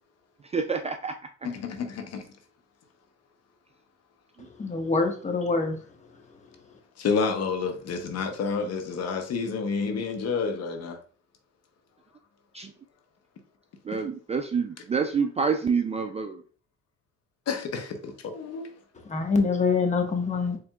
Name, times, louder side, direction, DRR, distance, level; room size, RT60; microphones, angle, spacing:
voice 1, 0.5-1.1 12.5-12.7 13.8-16.4, right 5 dB, 20° right, 0.3 m, -27 dB
voice 2, 1.4-2.3 7.0-11.0 17.5-18.7, left 5 dB, 50° left, 0.8 m, -29 dB
voice 3, 4.6-5.8 19.1-20.6, left 4 dB, 20° left, 0.9 m, -25 dB
4.4 x 3.4 x 2.3 m
cardioid pair, 100°, 32 cm